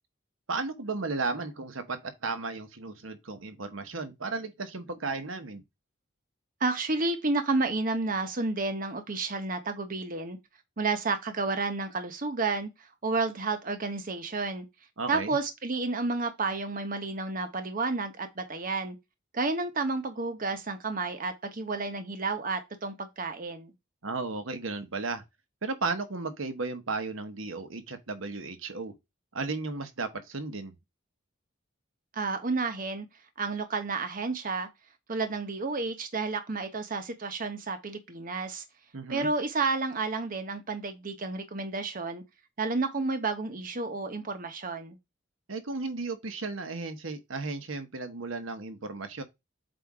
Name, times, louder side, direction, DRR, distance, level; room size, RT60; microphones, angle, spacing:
voice 1, 0.5-5.6 15.0-15.4 24.0-25.2 25.6-28.9 29.3-30.7 38.9-39.3 45.5-49.2, right 3 dB, 80° right, 1.1 m, -34 dB
voice 2, 6.6-10.4 10.8-14.7 15.1-19.0 19.3-23.7 32.1-33.1 33.4-34.7 35.1-38.6 39.1-42.2 42.6-45.0, right 3 dB, 45° right, 0.9 m, -31 dB
7.8 x 2.6 x 4.8 m
head